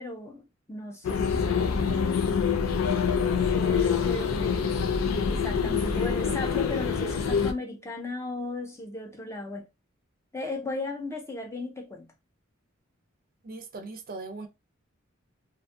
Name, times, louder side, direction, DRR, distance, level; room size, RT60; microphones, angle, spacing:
voice 1, 0.0-1.7 3.2-4.8 5.3-9.7 10.3-12.1, left 2 dB, 15° left, 0.5 m, -36 dB
sound 1, 1.0-7.5, left 6 dB, 85° left, 0.4 m, -26 dB
voice 2, 1.6-2.1 13.4-14.5, right 3 dB, 45° right, 0.5 m, -40 dB
2.6 x 2.3 x 2.5 m
head